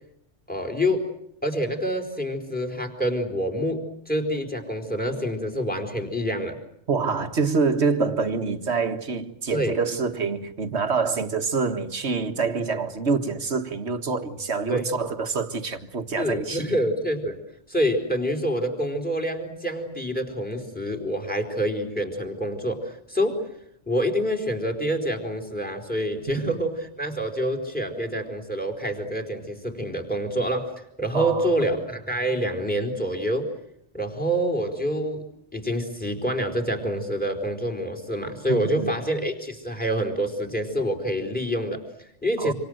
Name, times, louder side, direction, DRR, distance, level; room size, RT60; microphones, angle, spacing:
voice 1, 0.5-1.1 1.4-6.6 9.5-9.8 14.7-14.9 16.2-17.4 17.7-23.4 23.9-33.5 33.9-35.2 35.5-42.5, equal, 5° left, 4.4 m, -27 dB
voice 2, 6.9-16.7 26.4-26.5 31.1-31.5 38.5-38.9 42.4-42.5, right 4 dB, 65° right, 2.0 m, -26 dB
27.0 x 26.5 x 7.9 m
omnidirectional pair, 1.2 m